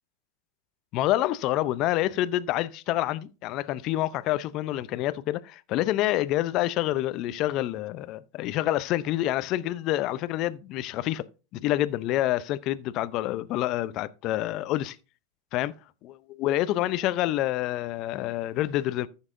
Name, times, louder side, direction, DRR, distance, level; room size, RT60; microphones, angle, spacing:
voice 1, 0.9-11.2 11.5-15.0 15.5-15.7 16.4-19.1, left 15 dB, 50° left, 0.6 m, -27 dB
14.0 x 7.2 x 2.6 m
hypercardioid pair, 90°, 0 cm